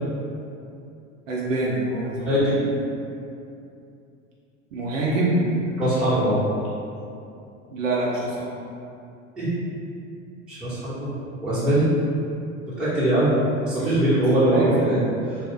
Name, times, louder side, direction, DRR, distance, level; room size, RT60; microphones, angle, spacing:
voice 1, 1.3-2.6 4.7-5.5 7.7-8.5 13.8-13.9 14.5-14.9, right 2 dB, 70° right, -5 dB, 0.6 m, -25 dB
voice 2, 2.2-2.6 5.8-6.4 9.4-9.5 10.5-11.1 11.4-11.9 12.8-15.0, right 1 dB, ahead, -13 dB, 0.8 m, -21 dB
2.4 x 2.1 x 3.5 m, 2.6 s
figure-of-eight pair, 75°, 39 cm